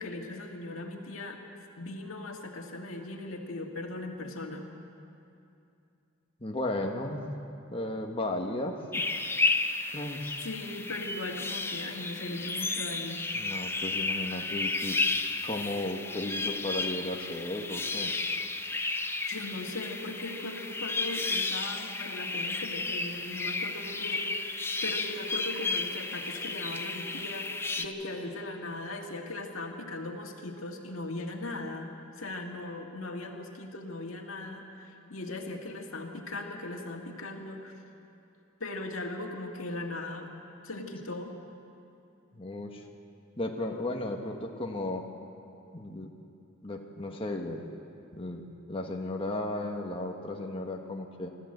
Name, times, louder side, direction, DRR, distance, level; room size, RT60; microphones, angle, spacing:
voice 1, 0.0-4.7 9.7-10.0 10.4-13.2 18.9-37.8 38.6-40.3 40.6-41.4, left 2 dB, 85° left, 2 dB, 2.1 m, -39 dB
voice 2, 6.4-7.3 7.7-9.2 9.9-10.4 13.3-15.0 15.4-18.1 42.3-42.8 43.4-45.0 45.7-46.1 46.6-47.6 48.1-51.3, left 1 dB, 25° left, 1 dB, 1.3 m, -35 dB
sound 1, 8.9-27.8, left 3 dB, 10° left, 0.8 m, -33 dB
25.0 x 13.5 x 7.9 m, 2.7 s
head